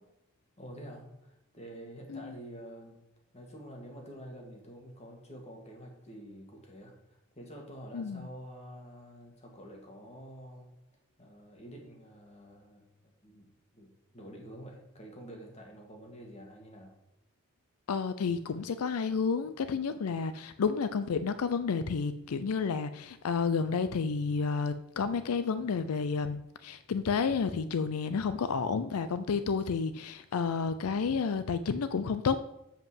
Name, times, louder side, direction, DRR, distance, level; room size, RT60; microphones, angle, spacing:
voice 1, 0.6-3.0 3.3-10.7 11.2-12.8 13.2-13.5 13.7-16.9, equal, 30° left, 1 dB, 2.0 m, -48 dB
voice 2, 7.9-8.3 17.9-32.4, left 5 dB, 80° left, 12 dB, 0.5 m, -31 dB
7.5 x 5.4 x 7.3 m, 0.90 s
head